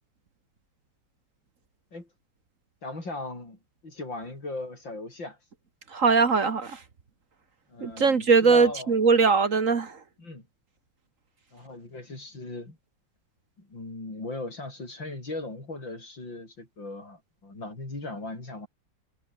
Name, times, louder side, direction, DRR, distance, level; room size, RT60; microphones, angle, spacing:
voice 1, 2.8-3.6 3.8-5.4 7.7-9.0 10.2-10.5 11.5-12.8 13.6-18.7, left 2 dB, 85° left, 8.3 m, -38 dB
voice 2, 5.9-6.8 7.8-9.9, right 4 dB, 45° right, 1.8 m, -21 dB
omnidirectional pair, 2.0 m